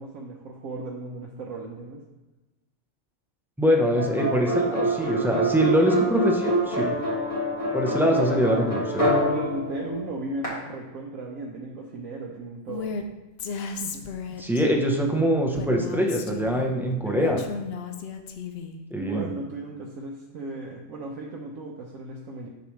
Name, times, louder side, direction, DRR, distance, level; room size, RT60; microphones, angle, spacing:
voice 1, 0.0-2.0 8.0-8.4 8.7-13.0 13.7-14.0 17.0-17.5 18.9-22.5, right 2 dB, 80° right, -2 dB, 1.1 m, -36 dB
voice 2, 3.6-6.9 7.7-9.1 14.4-17.4 18.9-19.3, equal, 5° right, 0 dB, 0.4 m, -23 dB
Dramyin Drive, 4.0-10.5, equal, 25° left, 2.2 m, -26 dB
Female speech woman speaking, 12.7-13.0 13.4-14.7 15.6-16.7 17.1-18.8, left 5 dB, 60° left, 0.7 m, -34 dB
6.7 x 6.2 x 3.1 m, 1.1 s
omnidirectional pair, 1.4 m